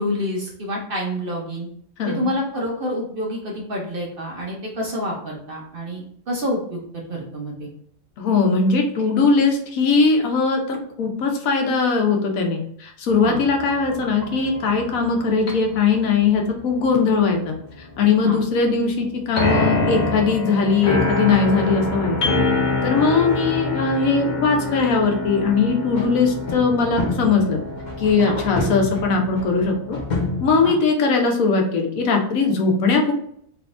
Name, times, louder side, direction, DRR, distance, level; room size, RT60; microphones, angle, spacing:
voice 1, 0.0-1.7 2.1-6.8 7.1-7.7 13.2-13.4 18.2-18.4 23.0-23.1 28.2-28.4 30.6-30.8, equal, 50° right, -1 dB, 0.8 m, -28 dB
voice 2, 2.0-2.3 8.2-22.3 22.8-27.6 28.0-30.0 30.4-33.1, left 4 dB, 80° left, 3 dB, 1.2 m, -20 dB
sound 1, 13.1-30.7, left 2 dB, 50° left, 0.6 m, -26 dB
3.5 x 3.0 x 2.4 m, 0.65 s
omnidirectional pair, 1.4 m